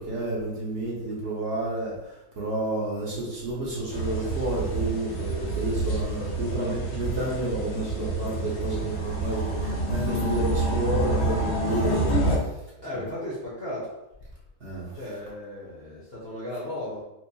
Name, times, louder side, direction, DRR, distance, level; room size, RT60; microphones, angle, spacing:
voice 1, 0.0-12.5 12.9-13.0 14.6-15.0, right 2 dB, 55° right, -5 dB, 1.1 m, -30 dB
sound 1, 3.9-12.4, right 2 dB, 80° left, 1.3 m, -28 dB
voice 2, 6.5-6.8 12.8-13.9 14.9-17.0, left 1 dB, 50° left, -5 dB, 0.9 m, -35 dB
4.5 x 2.1 x 2.7 m, 0.92 s
omnidirectional pair, 1.6 m